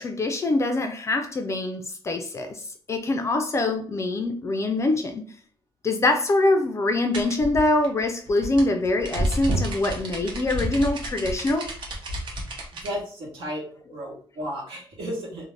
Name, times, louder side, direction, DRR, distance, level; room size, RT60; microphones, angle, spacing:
voice 1, 0.0-5.2 5.8-11.7, left 2 dB, 30° left, 0.3 m, -24 dB
sound 1, 7.1-12.9, right 1 dB, 60° right, 0.7 m, -30 dB
voice 2, 12.7-13.7 13.9-15.5, equal, 80° right, 1.1 m, -33 dB
2.5 x 2.1 x 3.2 m
cardioid pair, 125°, 9 cm